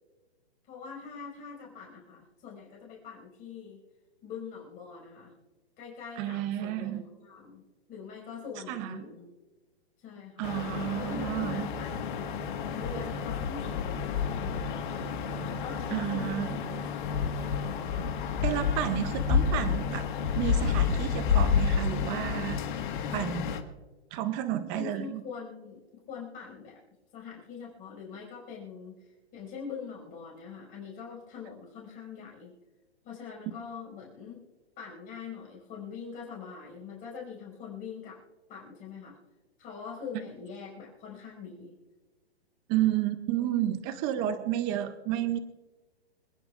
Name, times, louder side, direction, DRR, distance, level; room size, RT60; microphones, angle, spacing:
voice 1, 0.7-3.8 4.2-5.3 5.8-7.6 7.9-9.3 10.0-10.5 11.0-12.3 12.7-15.1 15.5-16.7 17.2-17.3 24.7-26.8 27.1-32.5 33.0-34.4 34.8-38.2 38.5-39.2 39.6-41.7 44.2-44.3, left 6 dB, 25° left, -3 dB, 5.0 m, -43 dB
voice 2, 6.2-7.0 8.7-9.1 10.4-11.7 15.9-16.5 17.9-18.1 18.4-20.1 20.4-22.6 23.1-23.6 24.1-25.2 42.7-45.4, right 12 dB, 15° right, 11 dB, 0.4 m, -31 dB
sound 1, 10.4-23.6, left 6 dB, 50° left, 1.6 m, -30 dB
27.0 x 10.5 x 2.4 m, 1.2 s
hypercardioid pair, 145°, 32 cm